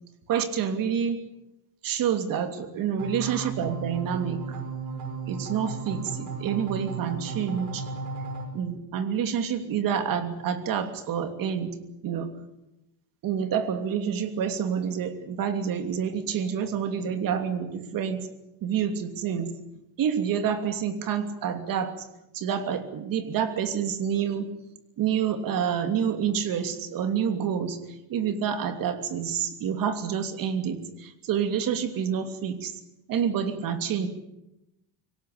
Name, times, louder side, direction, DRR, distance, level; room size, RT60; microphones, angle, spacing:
voice 1, 0.3-1.2 1.8-4.6 5.3-7.9 8.5-12.3 13.2-18.3 18.6-19.5 20.0-22.1 22.3-24.5 25.0-27.8 28.1-32.7 33.1-34.1, right 8 dB, 60° right, 8 dB, 3.0 m, -28 dB
sound 1, 3.0-8.5, right 4 dB, 85° right, 5.8 m, -35 dB
25.0 x 18.0 x 8.7 m, 0.88 s
cardioid pair, 155°, 38 cm